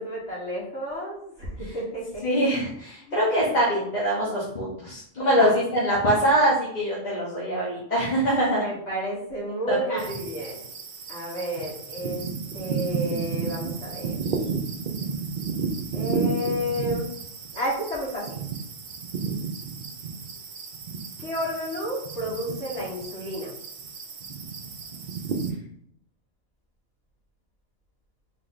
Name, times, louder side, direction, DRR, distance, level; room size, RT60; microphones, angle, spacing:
voice 1, 0.0-2.4 3.0-3.2 3.5-3.8 5.4-5.5 8.5-10.7 11.1-12.2 12.5-14.2 15.9-17.1 17.5-18.4 21.2-23.5, equal, 60° left, -5 dB, 1.9 m, -31 dB
voice 2, 2.2-8.6 9.7-10.0, equal, 35° left, -7 dB, 1.0 m, -23 dB
sound 1, 10.0-25.5, right 5 dB, 55° right, 0.6 m, -32 dB
3.7 x 3.3 x 3.9 m, 0.71 s
omnidirectional pair, 1.4 m